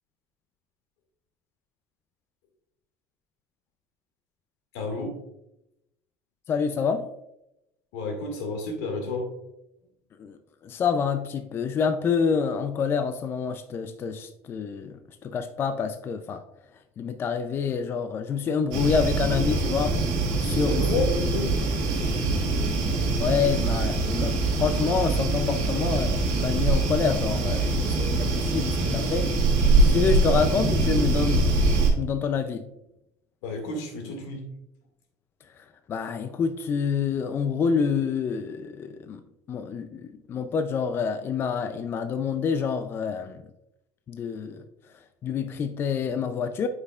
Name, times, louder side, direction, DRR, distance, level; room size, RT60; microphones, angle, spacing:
voice 1, 4.7-5.2 7.9-9.3 20.5-21.5 33.4-34.4, left 3 dB, 85° left, 1.9 m, -30 dB
voice 2, 6.5-7.1 10.2-16.4 17.0-20.0 20.4-20.9 23.2-29.3 29.8-32.6 35.6-39.2 39.5-43.4 44.1-44.6 45.2-46.7, left 6 dB, 30° left, 0.4 m, -27 dB
sound 1, 18.7-31.9, right 2 dB, 70° right, 1.5 m, -23 dB
8.0 x 5.5 x 2.4 m
cardioid pair, 140°, 7 cm